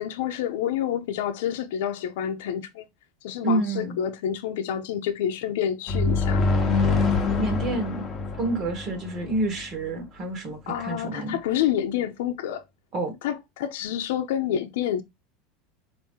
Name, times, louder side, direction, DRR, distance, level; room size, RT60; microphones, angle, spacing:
voice 1, 0.0-2.9 3.2-6.4 10.7-12.6 13.2-15.0, left 10 dB, 80° left, 0.6 m, -28 dB
voice 2, 3.4-4.0 6.6-8.1 8.4-11.4 12.9-13.2, right 2 dB, 35° right, 1.1 m, -29 dB
sound 1, 5.9-9.6, left 3 dB, 25° left, 0.9 m, -25 dB
4.2 x 2.7 x 3.6 m
supercardioid pair, 145°, 0 cm